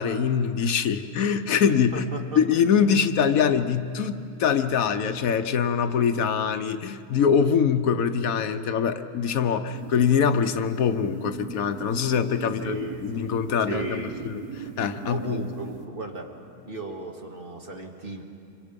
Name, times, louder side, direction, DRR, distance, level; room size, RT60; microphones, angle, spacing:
voice 1, 0.0-2.1 2.3-15.4, left 7 dB, 75° left, 9 dB, 1.2 m, -24 dB
voice 2, 1.9-2.4 12.6-13.3 13.6-14.4 15.0-16.3 16.6-18.2, right 2 dB, 40° right, 2 dB, 1.9 m, -36 dB
sound 1, 9.7-15.9, right 7 dB, 75° right, 1.3 m, -40 dB
27.0 x 24.5 x 5.2 m, 2.6 s
omnidirectional pair, 1.5 m